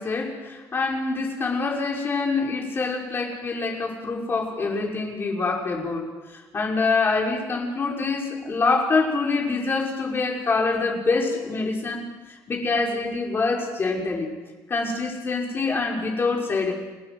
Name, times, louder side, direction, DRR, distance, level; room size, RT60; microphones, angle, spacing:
voice 1, 0.0-14.3 14.7-16.7, left 3 dB, 35° left, 0 dB, 5.7 m, -25 dB
29.5 x 20.0 x 6.4 m, 1.2 s
cardioid pair, 115°, 7 cm